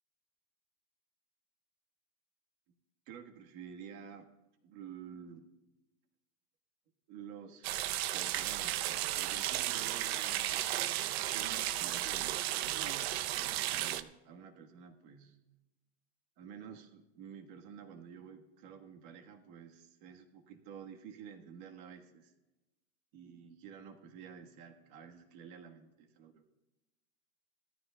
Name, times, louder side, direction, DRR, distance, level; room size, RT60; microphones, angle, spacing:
voice 1, 3.1-4.3 4.6-5.5 7.1-11.0 11.3-15.4 16.4-22.3 23.1-26.6, right 7 dB, 45° right, 5 dB, 1.4 m, -51 dB
sound 1, 7.6-14.0, right 14 dB, 75° right, 0.7 m, -34 dB
17.5 x 14.0 x 2.3 m, 1.0 s
supercardioid pair, 170°, 32 cm